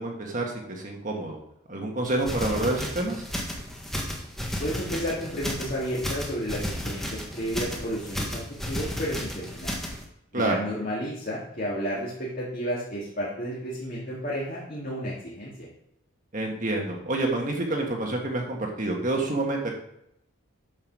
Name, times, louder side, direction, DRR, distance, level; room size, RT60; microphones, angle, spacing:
voice 1, 0.0-1.4 1.7-3.3 10.3-10.6 16.3-19.7, right 2 dB, 35° right, 1 dB, 1.5 m, -28 dB
sound 1, 2.1-10.0, equal, ahead, 1.3 m, -33 dB
voice 2, 4.6-9.7 10.3-15.5, equal, 40° left, -7 dB, 2.5 m, -32 dB
9.3 x 5.4 x 6.2 m, 0.79 s
head